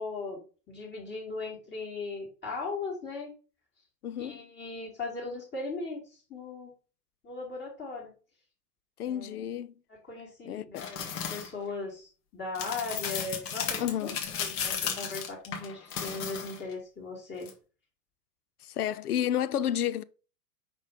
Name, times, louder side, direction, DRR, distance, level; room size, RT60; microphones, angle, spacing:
voice 1, 0.0-3.3 4.2-6.7 7.2-8.1 9.0-9.5 9.9-11.0 11.3-17.5, left 3 dB, 20° left, 2.2 m, -38 dB
voice 2, 4.0-4.4 9.0-9.7 10.4-10.9 13.8-14.2 18.6-20.0, left 10 dB, 65° left, 0.6 m, -31 dB
sound 1, 10.8-11.5 12.6-16.7 17.4-17.5, left 7 dB, 40° left, 1.5 m, -34 dB
5.3 x 4.1 x 4.9 m
figure-of-eight pair, 95°, 48 cm